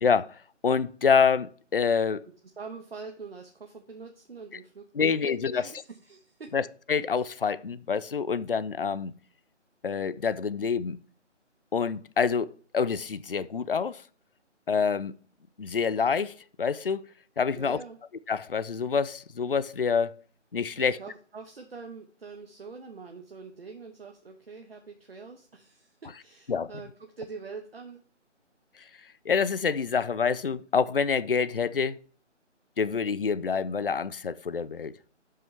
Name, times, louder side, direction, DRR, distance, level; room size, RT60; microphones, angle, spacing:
voice 1, 0.0-2.2 5.0-5.7 6.5-9.1 9.8-11.0 11.7-14.0 14.7-15.1 15.6-17.0 17.4-17.8 18.3-20.1 20.5-21.0 26.5-26.7 29.3-32.0 32.8-35.0, left 6 dB, 50° left, 0.5 m, -27 dB
voice 2, 2.6-6.5 17.5-18.0 20.8-28.0, right 4 dB, 50° right, 1.1 m, -44 dB
12.0 x 5.5 x 3.3 m
figure-of-eight pair, 155°, 37 cm